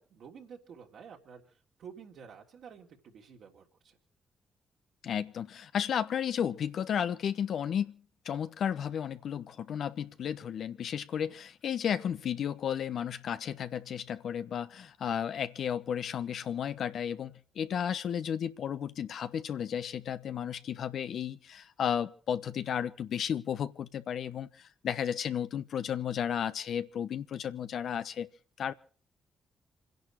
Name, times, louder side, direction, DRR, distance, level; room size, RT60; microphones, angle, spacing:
voice 1, 0.0-4.0 11.2-11.4, right 7 dB, 65° right, 3.3 m, -51 dB
voice 2, 5.0-28.3 28.6-28.7, left 8 dB, 65° left, 1.0 m, -33 dB
28.0 x 11.0 x 4.7 m
hypercardioid pair, 40°, 0 cm